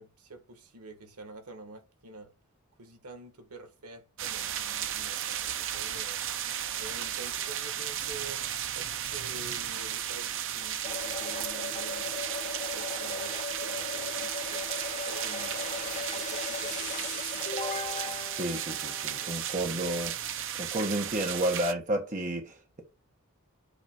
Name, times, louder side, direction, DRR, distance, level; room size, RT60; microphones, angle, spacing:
voice 1, 0.0-2.3 2.8-6.2 6.8-8.4 8.7-14.7 15.1-17.5 17.9-18.4 19.2-19.6, right 2 dB, 90° right, 1.7 m, -48 dB
sound 1, 4.2-21.7, right 10 dB, 60° right, 0.7 m, -34 dB
sound 2, 10.8-19.5, left 4 dB, 35° left, 1.5 m, -38 dB
voice 2, 18.4-20.2 20.6-22.8, right 1 dB, 35° right, 1.5 m, -31 dB
8.2 x 3.1 x 5.0 m
head